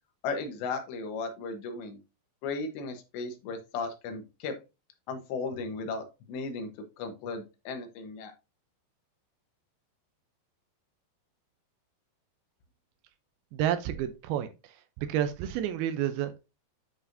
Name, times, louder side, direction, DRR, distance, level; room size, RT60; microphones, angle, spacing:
voice 1, 0.2-2.0 2.4-4.6 5.1-6.7 7.0-8.3, left 4 dB, 80° left, 3.3 m, -35 dB
voice 2, 13.5-14.5 15.0-16.5, right 11 dB, 85° right, 2.2 m, -30 dB
9.9 x 4.8 x 2.6 m
omnidirectional pair, 5.1 m